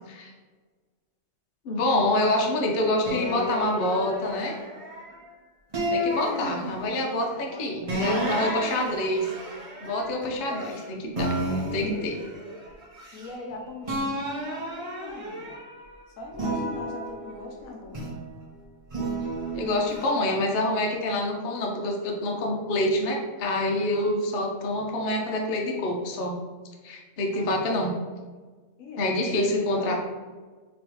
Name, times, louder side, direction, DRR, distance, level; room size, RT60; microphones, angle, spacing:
voice 1, 1.6-4.6 5.9-9.3 9.8-10.6 10.9-11.3 11.7-12.2 19.5-26.4 26.8-27.9 29.0-29.9, left 1 dB, 55° left, 0 dB, 0.7 m, -26 dB
sound 1, 3.0-5.2 5.7-7.1 7.9-10.8 11.1-13.5 13.8-15.9 16.3-18.3 18.9-20.0, right 1 dB, 35° right, 0.6 m, -32 dB
voice 2, 6.2-6.6 7.1-7.8 10.4-10.8 11.5-11.7 13.1-14.2 14.5-15.6 16.2-18.2 27.3-27.6 28.8-29.9, left 2 dB, 75° left, 1 dB, 1.0 m, -40 dB
3.6 x 2.9 x 2.9 m, 1.4 s
omnidirectional pair, 1.5 m